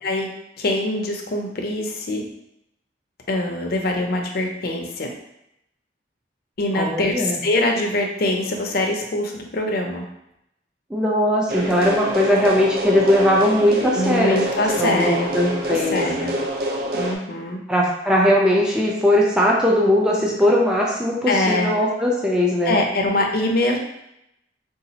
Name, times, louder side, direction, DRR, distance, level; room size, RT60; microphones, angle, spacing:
voice 1, 0.6-2.2 3.3-5.1 6.6-10.0 13.9-16.4 16.9-17.6 21.3-21.7 22.6-23.8, left 1 dB, 55° left, 2 dB, 0.5 m, -23 dB
voice 2, 6.7-7.4 10.9-14.4 14.8-16.0 17.7-22.8, left 1 dB, 5° right, -3 dB, 0.4 m, -19 dB
sound 1, 11.5-17.1, right 1 dB, 55° right, 0.5 m, -26 dB
3.9 x 2.4 x 2.8 m, 0.82 s
head